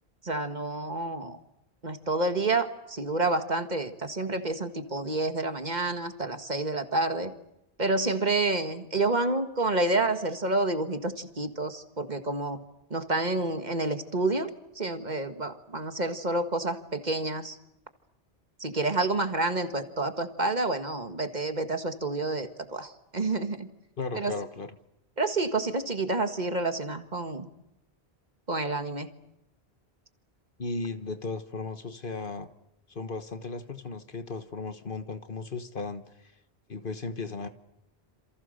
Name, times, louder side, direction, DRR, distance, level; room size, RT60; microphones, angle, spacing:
voice 1, 0.2-1.4 1.8-7.3 7.8-12.6 12.9-14.5 14.8-17.6 18.6-23.7 24.1-24.3 25.2-27.5 28.5-29.1, right 2 dB, 45° right, 8 dB, 1.9 m, -29 dB
voice 2, 24.0-24.8 30.6-32.5 32.9-36.3 36.7-37.5, left 3 dB, 55° left, 10 dB, 1.5 m, -36 dB
28.0 x 27.5 x 6.6 m, 0.84 s
omnidirectional pair, 1.1 m